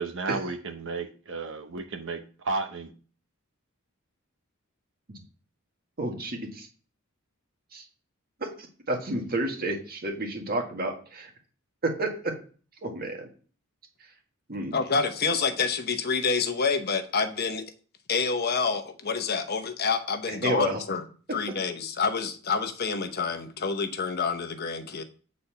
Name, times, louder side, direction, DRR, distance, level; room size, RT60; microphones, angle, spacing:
voice 1, 0.0-2.9, right 4 dB, 60° right, 5 dB, 1.0 m, -33 dB
voice 2, 6.0-6.7 7.7-7.8 8.4-8.5 8.9-11.3 11.8-12.1 12.8-13.3 14.5-14.7 20.4-20.8, right 2 dB, 45° right, 2 dB, 1.8 m, -30 dB
voice 3, 14.7-17.7 18.1-21.0 21.3-25.0, left 5 dB, 50° left, 7 dB, 0.9 m, -28 dB
8.7 x 4.2 x 5.6 m, 0.40 s
head